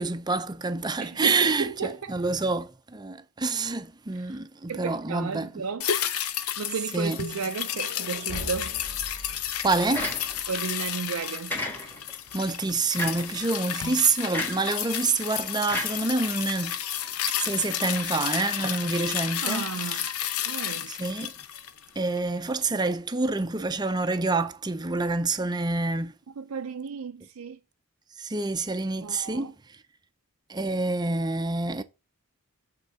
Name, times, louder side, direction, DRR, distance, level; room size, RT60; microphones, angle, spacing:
voice 1, 0.0-5.6 6.9-7.2 9.6-10.1 12.3-16.8 17.3-20.0 20.9-21.3 22.0-26.1 28.2-29.5 30.5-31.8, right 3 dB, 20° right, 0.5 m, -27 dB
voice 2, 1.0-2.2 4.1-4.4 4.7-5.9 6.6-8.7 10.5-11.6 19.4-20.1 20.5-20.9 26.4-27.6 29.0-29.5, right 6 dB, 75° right, 0.5 m, -33 dB
sound 1, 5.8-22.3 22.6-22.7, left 10 dB, 80° left, 0.7 m, -32 dB
sound 2, 7.3-11.2, left 1 dB, 50° left, 2.3 m, -43 dB
sound 3, 9.9-10.6 11.5-12.2 13.0-13.4 14.3-14.7 15.7-16.6, left 1 dB, 10° left, 1.5 m, -33 dB
8.1 x 3.8 x 6.8 m
head